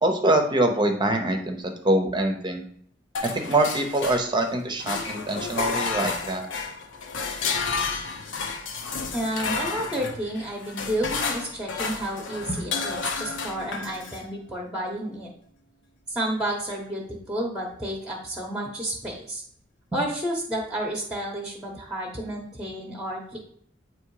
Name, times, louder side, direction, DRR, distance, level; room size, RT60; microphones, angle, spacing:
voice 1, 0.0-2.6 3.3-6.5 12.5-12.6, right 1 dB, 25° right, 5 dB, 0.9 m, -24 dB
sound 1, 3.1-4.5 4.8-14.2, left 4 dB, 70° left, 0.9 m, -31 dB
voice 2, 9.1-15.3 16.1-19.4 19.9-23.4, right 1 dB, 5° right, -1 dB, 1.0 m, -31 dB
8.5 x 3.1 x 4.8 m, 0.63 s
head